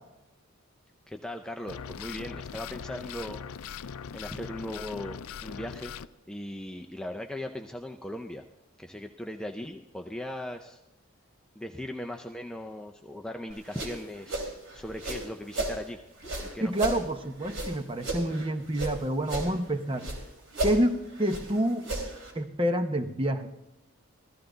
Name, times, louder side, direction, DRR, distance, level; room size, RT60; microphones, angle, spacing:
voice 1, 1.1-3.4 4.1-5.9 6.3-8.4 8.8-10.8 11.6-16.0 16.4-16.7, left 1 dB, 5° left, 3 dB, 0.5 m, -38 dB
sound 1, 1.7-6.1, left 7 dB, 85° left, 0.4 m, -40 dB
sound 2, 13.5-15.8 16.2-18.9 19.2-20.2 20.5-22.3, right 1 dB, 65° right, 3.3 m, -34 dB
voice 2, 16.6-20.1 20.6-21.8 22.3-23.5, right 1 dB, 25° right, 8 dB, 0.8 m, -28 dB
15.0 x 13.5 x 3.9 m, 0.98 s
head